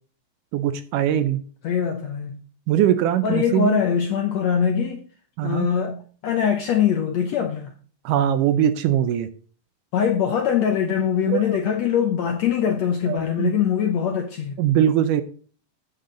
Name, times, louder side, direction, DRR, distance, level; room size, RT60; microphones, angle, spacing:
voice 1, 0.5-1.4 2.7-3.8 5.4-5.7 8.1-9.3 11.3-11.6 13.1-13.5 14.6-15.2, right 10 dB, 75° right, 2.0 m, -21 dB
voice 2, 1.6-2.4 3.2-5.0 5.4-7.7 9.9-14.6, left 8 dB, 70° left, 1.6 m, -22 dB
9.4 x 8.3 x 3.8 m
omnidirectional pair, 4.1 m